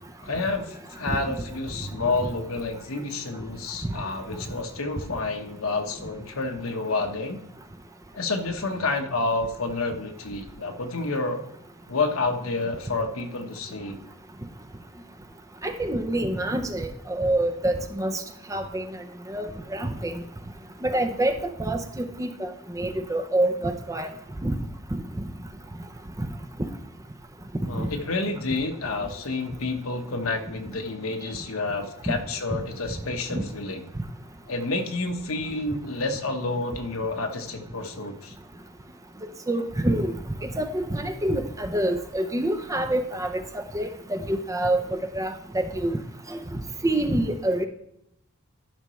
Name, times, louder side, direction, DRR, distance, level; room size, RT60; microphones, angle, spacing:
voice 1, 0.2-7.4 8.1-11.4 11.9-14.0 27.7-33.8 34.5-38.3, left 3 dB, 70° left, 5 dB, 1.1 m, -29 dB
voice 2, 15.6-18.2 18.5-18.9 19.3-20.2 20.8-24.1 24.4-24.6 27.8-27.9 32.1-32.2 32.5-32.6 33.3-33.4 39.5-40.1 40.5-46.0 46.3-47.7, right 1 dB, 15° right, 7 dB, 0.5 m, -27 dB
12.0 x 5.6 x 3.1 m, 0.79 s
head